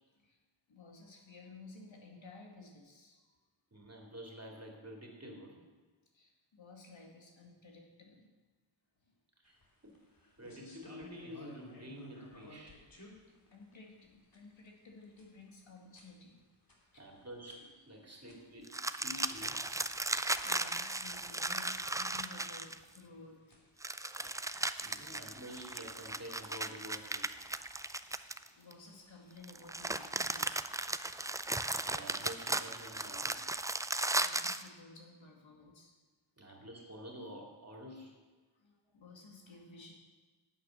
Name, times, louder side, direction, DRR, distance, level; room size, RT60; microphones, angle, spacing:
voice 1, 0.7-3.4 6.1-8.3 9.0-9.1 13.5-16.4 16.9-17.0 18.1-18.2 20.1-23.4 24.9-25.0 28.6-31.2 33.9-35.9 38.5-39.9, left 3 dB, 65° left, 0 dB, 2.2 m, -55 dB
voice 2, 3.7-5.7 9.4-9.9 10.4-12.8 17.0-18.7 19.0-19.6 24.8-27.3 31.8-33.4 36.4-38.2, equal, 30° right, 0 dB, 2.7 m, -49 dB
sound 1, 9.5-29.4, left 1 dB, 45° left, 2.8 m, -62 dB
sound 2, 18.7-23.0 23.8-28.7 29.4-34.7, right 2 dB, 10° right, 0.3 m, -36 dB
8.9 x 8.5 x 6.4 m, 1.3 s
cardioid pair, 60°, 50 cm